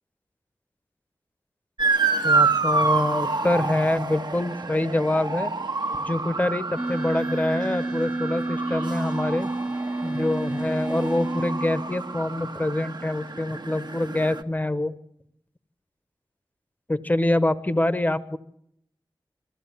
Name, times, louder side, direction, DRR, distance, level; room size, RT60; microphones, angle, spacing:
Motor vehicle (road) / Siren, 1.8-14.4, right 4 dB, 55° right, 1.3 m, -28 dB
voice 1, 2.2-5.5 6.0-9.5 10.0-14.9 16.9-18.4, left 1 dB, 20° left, 14 dB, 1.0 m, -25 dB
sound 1, 6.8-12.3, right 2 dB, 10° right, 0.8 m, -30 dB
21.0 x 15.0 x 8.4 m, 0.73 s
wide cardioid pair, 90°, 8 cm